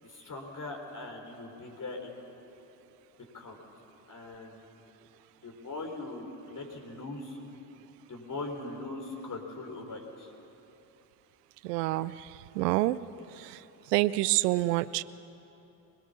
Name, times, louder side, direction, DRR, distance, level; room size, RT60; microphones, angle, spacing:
voice 1, 0.0-2.1 3.3-3.6 4.1-4.6 5.4-7.4 8.1-10.3 13.2-13.3, left 2 dB, 40° left, 3 dB, 4.6 m, -40 dB
voice 2, 11.6-13.0 13.3-13.6 13.9-15.0, right 17 dB, 90° right, 17 dB, 0.6 m, -28 dB
23.0 x 21.0 x 7.0 m, 3.0 s
hypercardioid pair, 55°, 46 cm